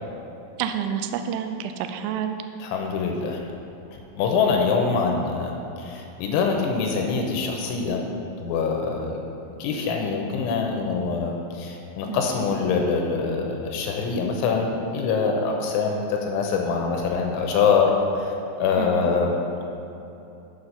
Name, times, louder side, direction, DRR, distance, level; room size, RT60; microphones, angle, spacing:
voice 1, 0.6-2.4 12.1-12.2 18.8-19.2, right 8 dB, 85° right, 7 dB, 2.8 m, -29 dB
voice 2, 2.6-3.4 3.9-8.0 8.4-9.2 9.6-19.4, left 5 dB, 85° left, 1 dB, 3.1 m, -24 dB
8.0 x 6.5 x 5.6 m, 2.9 s
omnidirectional pair, 5.7 m